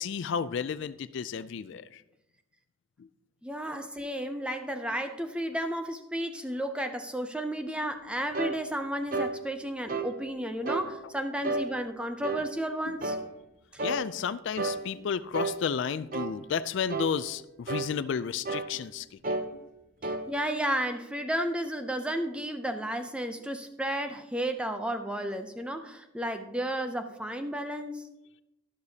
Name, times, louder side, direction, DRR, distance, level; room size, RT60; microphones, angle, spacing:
voice 1, 0.0-2.0 12.9-13.0 13.8-19.4, left 7 dB, 55° left, 13 dB, 0.3 m, -32 dB
voice 2, 3.4-13.2 13.7-13.8 20.0-28.1, right 1 dB, 5° right, 7 dB, 0.4 m, -33 dB
sound 1, 8.3-8.6 9.1-9.3 9.9-10.1 10.6-10.9 11.4-11.7 12.2-12.5 13.0-13.2 13.8-14.0 14.6-14.8 15.3-15.6 16.1-16.3 16.9-17.1 17.7-17.9 18.4-18.7 19.2-19.5 20.0-20.2, right 3 dB, 40° right, 0.7 m, -31 dB
11.5 x 11.5 x 2.8 m, 0.92 s
head